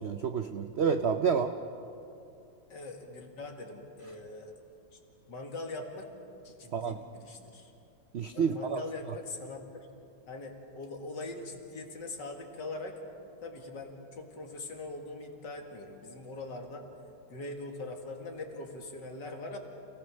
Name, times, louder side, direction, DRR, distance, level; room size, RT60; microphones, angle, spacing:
voice 1, 0.0-1.5 6.7-7.0 8.1-8.8, right 6 dB, 75° right, 8 dB, 0.6 m, -29 dB
voice 2, 2.7-4.5 4.9-5.0 5.3-6.1 6.4-7.7 8.3-9.9 10.3-13.0 13.4-16.9 17.3-19.6, left 2 dB, 70° left, 3 dB, 2.6 m, -42 dB
29.0 x 17.5 x 6.3 m, 2.7 s
omnidirectional pair, 2.0 m